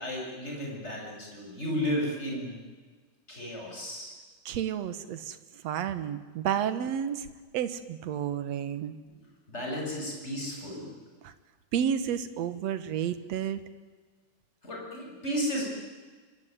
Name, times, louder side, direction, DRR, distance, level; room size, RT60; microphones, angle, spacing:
voice 1, 0.0-2.6 3.3-4.1 9.5-10.9 14.6-15.6, equal, 20° left, -1 dB, 8.2 m, -33 dB
voice 2, 4.5-5.4 5.6-7.3 7.5-8.9 11.2-11.3 11.7-13.6, right 9 dB, 60° right, 12 dB, 2.4 m, -31 dB
25.0 x 24.5 x 9.8 m, 1.4 s
omnidirectional pair, 3.5 m